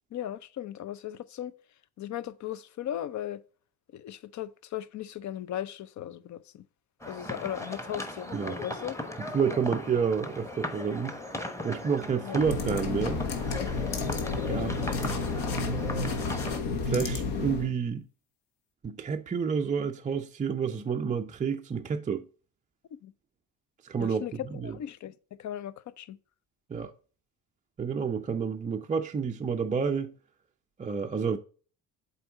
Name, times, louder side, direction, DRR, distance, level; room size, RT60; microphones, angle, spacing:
voice 1, 0.1-1.5 2.0-3.4 3.9-6.6 7.0-9.0 12.2-12.4 14.5-14.6 23.0-23.1 24.0-25.1 25.4-26.2, left 11 dB, 40° left, 0.6 m, -37 dB
sound 1, 7.0-16.6, left 1 dB, 5° left, 1.1 m, -38 dB
voice 2, 9.3-11.2 11.6-13.2 14.5-14.8 15.5-15.8 16.8-18.1 18.8-22.3 23.8-24.2 24.5-24.8 26.7-26.9 27.8-30.1 30.8-31.4, right 6 dB, 20° right, 0.4 m, -29 dB
sound 2, 12.3-17.7, left 4 dB, 60° left, 1.3 m, -31 dB
7.6 x 4.2 x 3.7 m
hypercardioid pair, 55°, 45 cm